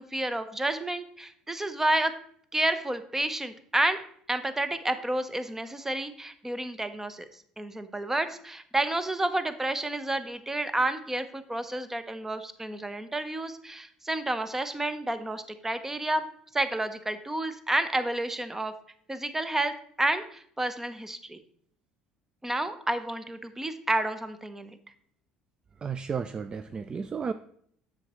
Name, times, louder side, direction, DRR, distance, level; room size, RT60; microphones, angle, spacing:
voice 1, 0.0-2.1 2.5-4.0 4.3-7.3 7.6-16.2 16.5-18.7 19.1-21.4 22.4-24.8, right 1 dB, 15° right, 11 dB, 0.8 m, -30 dB
voice 2, 25.8-27.3, right 6 dB, 30° right, 12 dB, 0.3 m, -33 dB
7.6 x 6.4 x 3.0 m, 0.64 s
hypercardioid pair, 70°, 3 cm